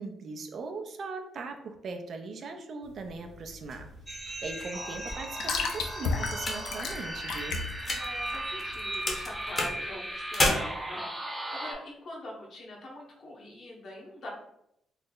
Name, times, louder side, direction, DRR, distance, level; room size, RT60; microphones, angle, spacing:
voice 1, 0.0-7.6, right 4 dB, 55° right, 5 dB, 0.5 m, -40 dB
sound 1, 2.8-9.6, left 4 dB, 80° left, 0.5 m, -35 dB
sound 2, 3.7-8.8 9.1-10.5, left 2 dB, 35° left, 0.9 m, -34 dB
sound 3, 4.1-11.7, right 1 dB, 10° right, 0.6 m, -37 dB
voice 2, 7.8-14.3, left 1 dB, 55° left, -2 dB, 1.0 m, -43 dB
3.2 x 2.0 x 3.7 m, 0.78 s
cardioid pair, 90°, 0 cm